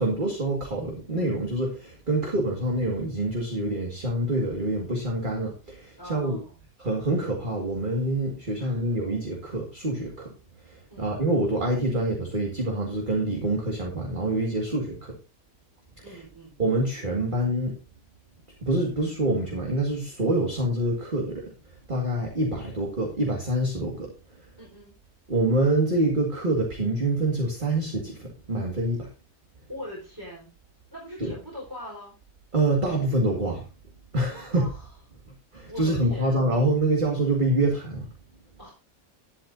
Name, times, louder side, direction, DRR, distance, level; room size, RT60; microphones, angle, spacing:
voice 1, 0.0-6.4 6.8-10.3 10.6-15.1 16.0-16.2 16.6-17.8 18.6-21.5 21.9-24.1 25.3-29.1 31.2-31.3 32.5-33.6 34.1-34.7 35.5-38.1, right 1 dB, 35° right, 0 dB, 2.2 m, -26 dB
voice 2, 6.0-6.5 8.6-8.9 10.9-11.1 14.7-14.8 16.0-16.5 24.6-24.9 29.7-30.5 30.9-32.1 34.6-34.9 35.7-36.4 38.6-38.7, left 1 dB, 15° right, -6 dB, 4.6 m, -41 dB
12.0 x 11.5 x 2.7 m, 0.30 s
omnidirectional pair, 1.5 m